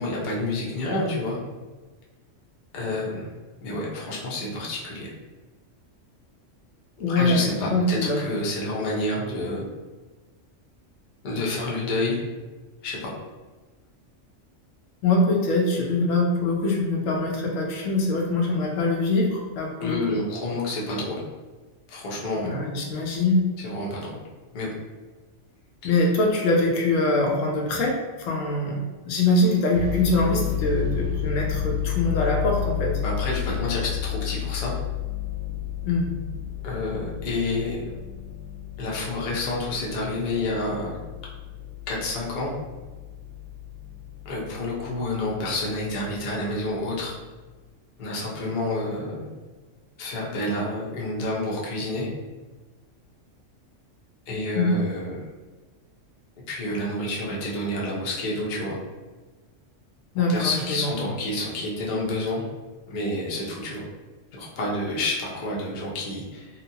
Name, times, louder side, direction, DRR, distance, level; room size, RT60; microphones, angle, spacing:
voice 1, 0.0-1.4 2.7-3.3 3.6-5.1 7.1-9.6 11.2-12.2 12.8-13.1 19.8-21.2 21.9-22.6 23.6-24.2 24.5-24.7 33.0-34.7 36.6-37.8 38.8-41.0 41.9-42.5 44.2-47.1 48.0-49.3 50.0-52.1 54.3-55.2 56.5-58.8 60.2-62.4 62.9-63.9 64.3-66.6, left 2 dB, 50° left, -4 dB, 0.7 m, -29 dB
voice 2, 7.0-8.3 15.0-20.2 22.4-23.4 25.8-32.9 35.8-36.1 54.5-54.7 60.1-60.9, left 2 dB, 80° left, 0 dB, 0.9 m, -23 dB
sound 1, 29.7-47.3, left 11 dB, 85° right, 1.0 m, -32 dB
2.8 x 2.1 x 2.7 m, 1.3 s
omnidirectional pair, 1.3 m